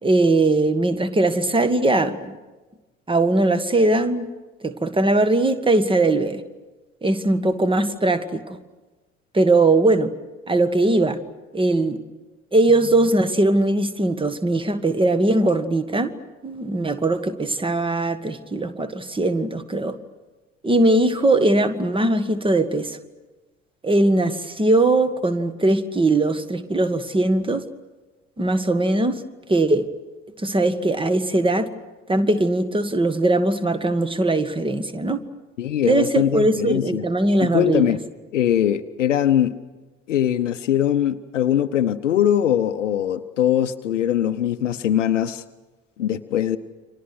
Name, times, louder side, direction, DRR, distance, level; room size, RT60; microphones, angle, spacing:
voice 1, 0.0-2.4 3.1-4.3 4.6-6.4 7.0-8.6 9.3-10.1 10.5-11.2 11.5-12.0 12.5-16.1 16.4-20.0 20.6-23.0 23.8-27.6 28.4-29.2 29.5-29.8 30.4-31.7 32.1-35.2 35.8-38.0, right 2 dB, 15° right, 11 dB, 1.7 m, -20 dB
voice 2, 35.6-37.0 37.4-38.0 38.3-39.5 40.1-45.4 46.0-46.6, left 10 dB, 75° left, 9 dB, 0.8 m, -21 dB
30.0 x 25.0 x 6.2 m, 1.2 s
figure-of-eight pair, 55°, 37 cm